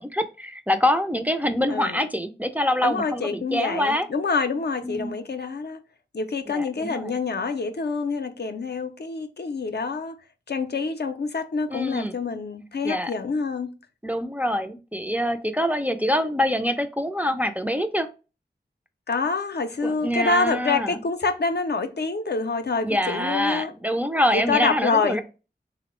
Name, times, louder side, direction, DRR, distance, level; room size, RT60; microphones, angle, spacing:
voice 1, 0.0-4.1 4.8-5.1 6.5-7.1 11.7-12.2 12.8-13.1 14.0-18.1 19.8-21.0 22.8-25.2, equal, 10° right, 0.3 m, -25 dB
voice 2, 2.8-5.8 6.1-10.1 10.5-13.7 19.1-23.7 24.3-25.2, left 4 dB, 70° left, 0.4 m, -26 dB
3.6 x 2.0 x 2.9 m
wide cardioid pair, 40°, 18 cm